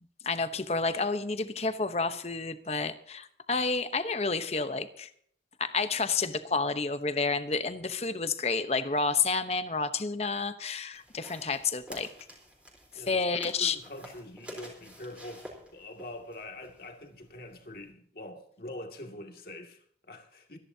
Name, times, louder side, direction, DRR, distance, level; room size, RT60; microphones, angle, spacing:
voice 1, 0.2-5.1 5.6-12.1 12.9-13.8, left 4 dB, 35° left, 1.0 m, -30 dB
sound 1, 10.9-17.9, equal, 5° right, 3.8 m, -50 dB
voice 2, 12.9-20.6, left 1 dB, 55° left, 2.3 m, -44 dB
25.0 x 11.0 x 2.8 m
head